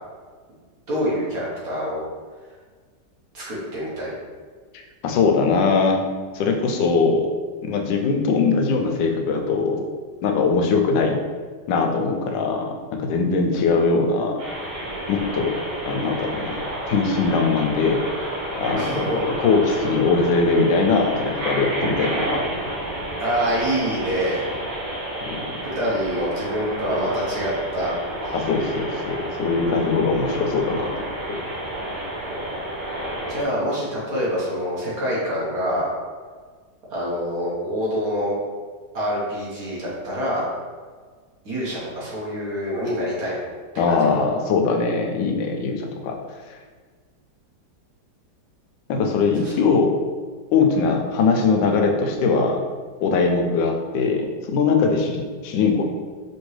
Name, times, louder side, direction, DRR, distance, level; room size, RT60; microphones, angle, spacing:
voice 1, 0.9-2.0 3.3-4.1 18.8-19.2 23.2-24.5 25.6-27.9 28.2-28.4 33.3-35.9 36.9-38.3 38.9-40.4 41.4-43.3 43.9-44.2 49.4-49.5, equal, 55° right, -6 dB, 1.6 m, -26 dB
voice 2, 4.7-6.0 6.3-7.3 7.6-9.8 10.2-11.2 11.7-14.4 15.1-15.5 15.9-18.0 18.5-22.4 25.3-25.4 28.3-30.9 43.8-46.2 48.9-49.9 50.5-52.6 53.0-55.8, left 4 dB, 85° left, 3 dB, 1.3 m, -21 dB
sound 1, 14.4-33.4, right 1 dB, 85° right, 1.8 m, -30 dB
5.3 x 2.9 x 3.2 m, 1.5 s
omnidirectional pair, 1.9 m